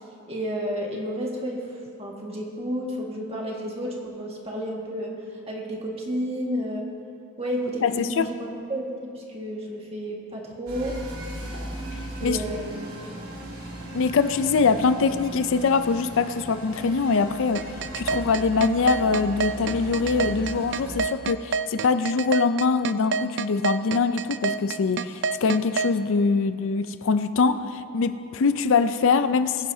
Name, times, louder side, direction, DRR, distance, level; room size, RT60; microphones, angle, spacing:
voice 1, 0.3-1.6 2.0-5.1 5.5-6.8 7.4-11.0 12.2-12.8, equal, 30° right, -1 dB, 1.8 m, -31 dB
voice 2, 7.8-8.3 12.2-12.4 13.9-29.7, left 4 dB, 65° left, 11 dB, 0.5 m, -23 dB
sound 1, 10.7-21.0, right 1 dB, 80° right, 2.6 m, -37 dB
sound 2, 17.5-25.9, right 5 dB, 55° right, 0.4 m, -27 dB
22.0 x 10.5 x 2.8 m, 2.6 s
head